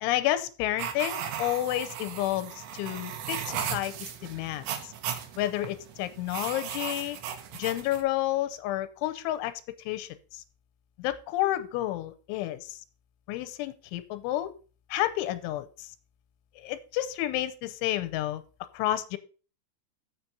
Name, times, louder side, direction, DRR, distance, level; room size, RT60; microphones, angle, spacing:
voice 1, 0.0-4.9 5.4-7.2 7.6-9.5 9.9-10.4 11.0-12.8 13.3-14.5 14.9-15.9 16.6-18.4 18.7-19.2, left 14 dB, 90° left, 12 dB, 3.1 m, -30 dB
sound 1, 0.8-8.0, right 9 dB, 75° right, 3.2 m, -37 dB
7.5 x 5.9 x 6.9 m, 0.37 s
omnidirectional pair, 5.5 m